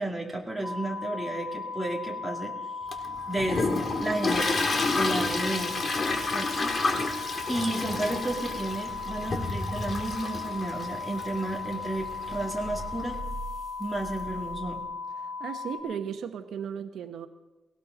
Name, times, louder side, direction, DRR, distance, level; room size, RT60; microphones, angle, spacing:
voice 1, 0.0-2.5 3.3-3.7 4.0-4.6 4.9-5.8 6.3-7.0 7.5-13.2 13.8-14.8, right 1 dB, ahead, -1 dB, 2.3 m, -32 dB
sound 1, 0.6-15.8, left 4 dB, 50° left, 4.5 m, -37 dB
Toilet flush, 2.9-13.1, left 3 dB, 35° left, 1.7 m, -30 dB
sound 2, 7.7-14.8, right 2 dB, 50° right, 7.1 m, -46 dB
voice 2, 15.2-17.3, right 7 dB, 75° right, 7 dB, 0.9 m, -36 dB
18.5 x 17.5 x 3.9 m, 1.1 s
wide cardioid pair, 150°, 0 cm